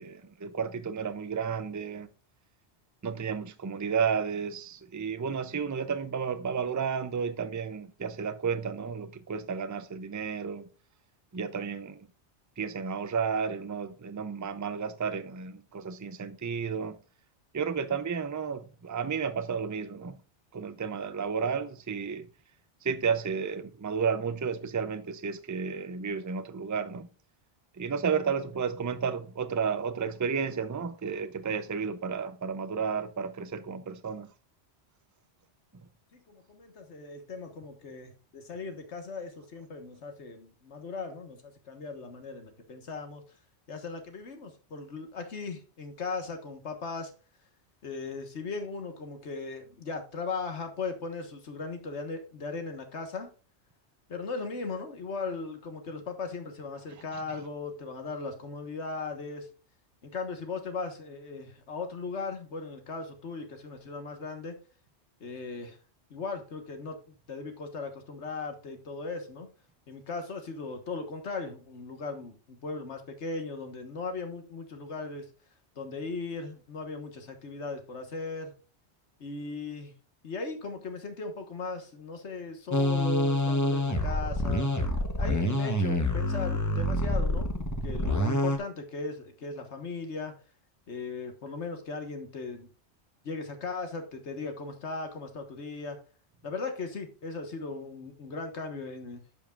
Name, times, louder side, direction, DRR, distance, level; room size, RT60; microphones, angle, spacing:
voice 1, 0.0-2.1 3.0-10.7 11.3-12.1 12.6-17.0 17.5-20.2 20.5-22.3 22.8-27.1 27.8-34.3, right 6 dB, 25° right, 0.4 m, -32 dB
voice 2, 36.1-43.2 43.7-47.1 47.8-53.3 54.1-59.5 60.0-64.5 65.2-65.8 66.1-69.5 69.9-75.3 75.7-78.5 79.2-79.9 80.2-84.7 85.2-87.5 87.8-90.3 90.9-92.7 93.2-96.0 96.4-99.4, left 4 dB, 75° left, 1.6 m, -38 dB
sound 1, 82.7-88.6, left 1 dB, 15° left, 0.9 m, -27 dB
12.5 x 5.4 x 2.4 m
omnidirectional pair, 1.2 m